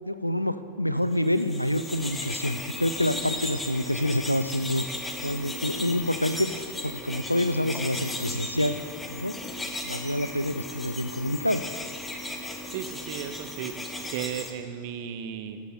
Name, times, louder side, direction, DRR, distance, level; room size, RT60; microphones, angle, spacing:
voice 1, 0.0-4.9 5.2-8.8 9.1-9.4 9.8-11.6, left 1 dB, 90° left, 12 dB, 0.4 m, -27 dB
sound 1, 1.2-14.5, left 1 dB, 10° left, 0.9 m, -36 dB
voice 2, 12.7-13.8 14.1-15.6, right 9 dB, 50° right, 9 dB, 0.7 m, -35 dB
13.0 x 7.0 x 4.3 m, 2.8 s
figure-of-eight pair, 90°, 0 cm